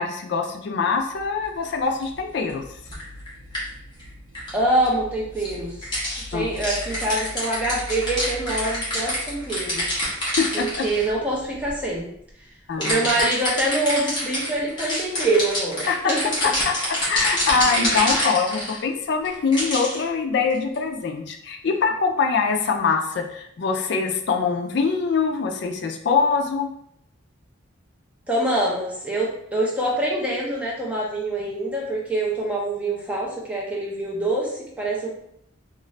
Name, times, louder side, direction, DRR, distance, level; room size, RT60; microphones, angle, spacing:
voice 1, 0.0-2.6 6.3-6.5 10.4-10.8 12.7-13.1 15.9-16.1 16.4-26.7, left 5 dB, 55° left, 3 dB, 0.3 m, -23 dB
sound 1, 0.9-12.0, left 1 dB, 70° right, 0.5 m, -42 dB
sound 2, 2.0-2.1 2.9-3.6 4.0-4.1 4.3-4.5 4.9-5.0 5.4-5.5 5.8-11.1 11.6-11.8 12.8-18.8 19.2-20.0 20.5-20.8, left 1 dB, 20° left, 0.9 m, -26 dB
voice 2, 4.5-5.8 6.3-9.8 10.5-12.1 12.8-16.2 17.7-18.1 28.3-35.1, right 1 dB, 5° right, -4 dB, 0.6 m, -25 dB
2.5 x 2.4 x 3.1 m, 0.71 s
head